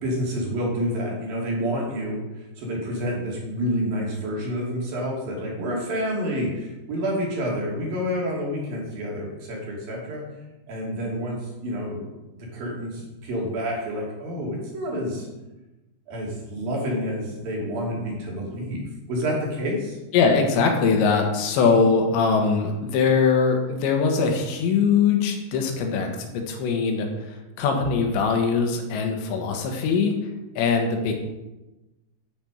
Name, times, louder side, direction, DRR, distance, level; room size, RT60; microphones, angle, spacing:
voice 1, 0.0-10.2 10.7-12.1 12.4-15.3 16.1-20.0, equal, 55° right, -3 dB, 4.1 m, -28 dB
voice 2, 20.1-27.1 27.6-30.2 30.6-31.1, left 5 dB, 75° left, 3 dB, 3.6 m, -21 dB
10.5 x 8.9 x 5.2 m, 1.1 s
omnidirectional pair, 5.4 m